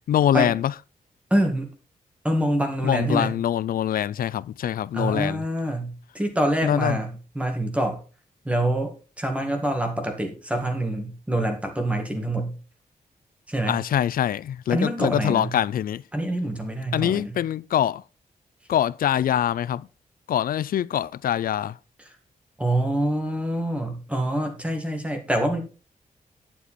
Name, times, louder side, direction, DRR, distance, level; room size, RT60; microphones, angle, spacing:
voice 1, 0.1-0.7 2.8-5.4 6.6-7.0 13.7-16.0 16.9-18.0 18.7-19.9 20.3-21.8, left 10 dB, 80° left, 0.4 m, -24 dB
voice 2, 1.3-1.7 2.2-3.3 4.9-8.0 8.4-12.5 13.5-13.8 14.7-15.5 16.1-17.4 22.1-22.2 22.6-25.6, right 1 dB, 10° right, 1.9 m, -26 dB
11.0 x 7.4 x 4.3 m
wide cardioid pair, 175°, 15 cm